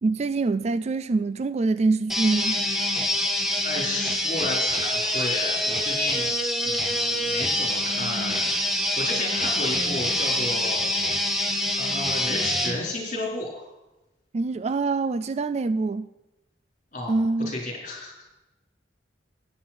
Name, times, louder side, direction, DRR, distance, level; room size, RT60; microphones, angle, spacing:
voice 1, 0.0-2.6 14.3-16.1 17.1-17.5, right 3 dB, 35° right, 0.4 m, -25 dB
sound 1, 2.1-12.8, left 1 dB, ahead, 1.3 m, -25 dB
voice 2, 3.6-6.3 6.6-10.9 11.8-13.7 16.9-17.2 17.4-18.2, left 2 dB, 45° left, 4.3 m, -33 dB
14.0 x 9.7 x 4.4 m
head